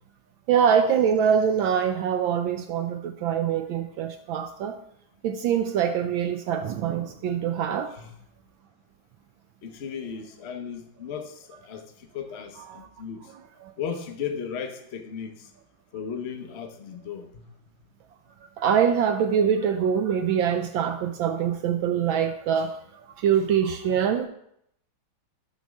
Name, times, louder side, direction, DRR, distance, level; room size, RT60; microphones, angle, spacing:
voice 1, 0.5-4.8 5.2-8.0 12.7-12.9 13.6-13.7 18.6-24.3, right 8 dB, 75° right, 7 dB, 1.2 m, -24 dB
voice 2, 9.6-13.3 13.8-15.5 15.9-17.4, left 7 dB, 60° left, 4 dB, 0.6 m, -36 dB
10.0 x 3.4 x 6.2 m, 0.73 s
omnidirectional pair, 2.3 m